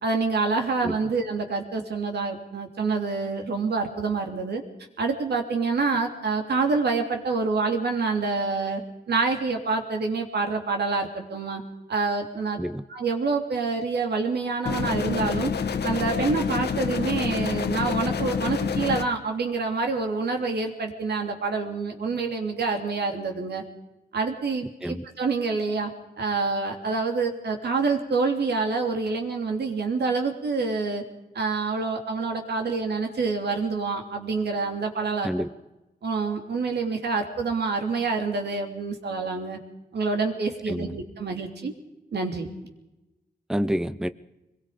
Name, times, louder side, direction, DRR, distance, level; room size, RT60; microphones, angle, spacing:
voice 1, 0.0-4.6 5.0-8.8 9.1-11.6 11.9-12.6 12.9-15.5 15.8-23.6 24.1-25.9 26.2-31.0 31.3-35.3 36.0-39.6 39.9-41.7 42.1-42.5, right 4 dB, 80° right, 4 dB, 3.2 m, -27 dB
sound 1, 14.7-19.1, left 6 dB, 85° left, 1.5 m, -27 dB
voice 2, 43.5-44.1, equal, 5° right, 15 dB, 0.7 m, -28 dB
23.5 x 21.5 x 5.2 m, 0.96 s
wide cardioid pair, 100°, 17 cm